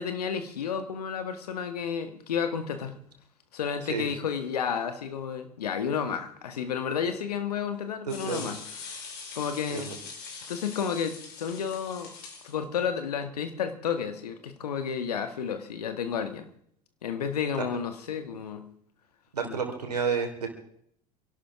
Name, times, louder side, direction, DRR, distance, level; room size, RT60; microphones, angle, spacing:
voice 1, 0.0-3.0 3.5-8.6 9.3-9.9 10.5-12.1 12.4-16.5 17.0-18.7 19.5-19.6, left 7 dB, 75° left, 9 dB, 1.7 m, -31 dB
sound 1, 8.1-12.5, left 5 dB, 55° left, 4.4 m, -43 dB
voice 2, 8.1-8.5 9.7-10.0 17.5-17.6 19.3-20.6, right 6 dB, 85° right, 4 dB, 3.0 m, -31 dB
27.0 x 11.5 x 3.6 m, 0.67 s
figure-of-eight pair, 70°, 20 cm